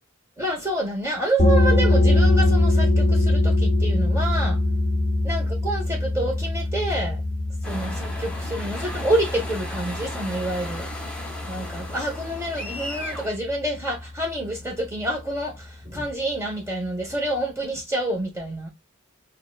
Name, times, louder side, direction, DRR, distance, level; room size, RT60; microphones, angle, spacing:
voice 1, 0.4-4.6 5.2-7.2 7.6-10.9 11.5-18.7, right 1 dB, 15° right, 1.1 m, -28 dB
sound 1, 1.4-12.8, left 2 dB, 40° left, 0.8 m, -22 dB
sound 2, 7.6-13.3, left 1 dB, 5° left, 0.9 m, -36 dB
6.6 x 2.4 x 2.4 m
head